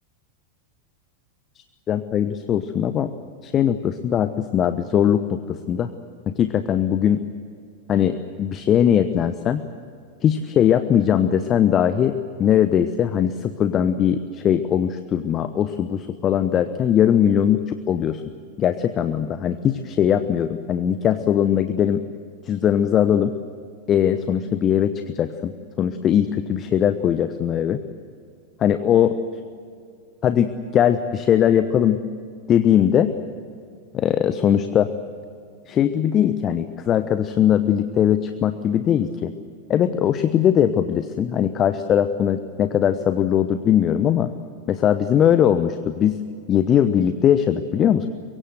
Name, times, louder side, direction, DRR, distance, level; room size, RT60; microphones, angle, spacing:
voice 1, 1.9-3.1 3.4-5.4 5.7-5.9 6.3-7.2 7.9-9.6 10.2-18.2 18.6-22.0 22.5-23.3 23.9-25.5 25.8-27.8 28.6-29.2 30.2-32.0 32.5-33.1 33.9-34.9 35.7-39.3 39.7-44.3 44.7-46.2 46.5-48.1, left 9 dB, 30° left, 11 dB, 1.0 m, -20 dB
23.5 x 23.0 x 7.8 m, 2.3 s
figure-of-eight pair, 90°, 0 cm